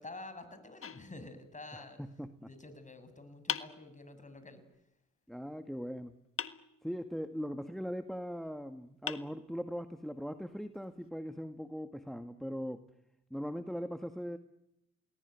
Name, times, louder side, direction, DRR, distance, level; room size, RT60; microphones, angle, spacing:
voice 1, 0.0-2.0 2.4-4.6, left 2 dB, 25° left, 10 dB, 6.8 m, -49 dB
sound 1, 0.8-1.8 3.5-4.5 6.4-7.3 8.5-8.6 9.1-10.0, left 7 dB, 45° left, 1.6 m, -42 dB
voice 2, 1.7-2.5 5.3-6.2 6.8-12.8 13.3-14.4, equal, ahead, 9 dB, 1.7 m, -40 dB
28.5 x 20.0 x 9.4 m, 0.82 s
supercardioid pair, 55°, 30 cm